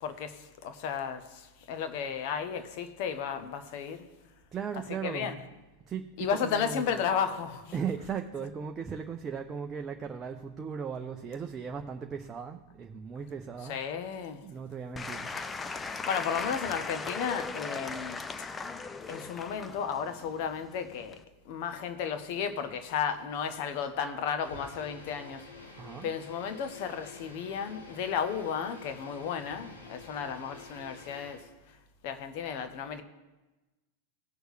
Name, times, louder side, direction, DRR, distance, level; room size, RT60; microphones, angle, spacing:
voice 1, 0.0-4.1 5.0-5.4 6.2-7.7 13.6-14.4 16.1-18.5 19.1-25.5 26.0-31.8 32.0-33.0, left 7 dB, 45° left, 1.1 m, -34 dB
voice 2, 4.5-5.4 5.9-7.0 7.7-13.8 14.4-15.3 25.8-26.1, right 6 dB, 20° right, 0.7 m, -37 dB
Applause / Crowd, 14.9-21.2, left 4 dB, 15° left, 0.6 m, -38 dB
sound 1, 24.4-31.5, left 3 dB, 80° left, 1.8 m, -49 dB
17.0 x 6.3 x 3.3 m
figure-of-eight pair, 90°, 0 cm